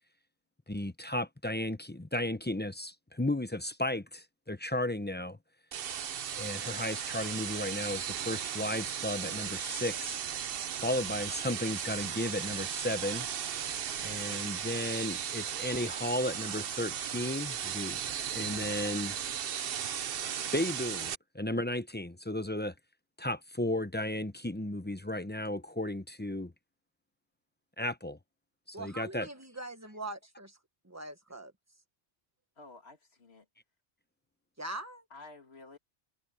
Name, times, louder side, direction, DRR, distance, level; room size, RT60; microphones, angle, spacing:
voice 1, 0.7-5.4 6.4-10.2 10.8-13.3 14.0-18.0 18.3-19.2 20.5-22.7 23.2-26.5 27.8-28.2 28.7-29.3, left 1 dB, 10° left, 0.6 m, -34 dB
sound 1, 5.7-21.1, right 9 dB, 60° right, 0.9 m, -36 dB
voice 2, 28.7-30.6 30.8-31.5 34.6-35.0, right 2 dB, 15° right, 1.5 m, -42 dB
voice 3, 32.6-33.5 35.1-35.8, left 3 dB, 70° left, 2.6 m, -51 dB
omnidirectional pair, 1.1 m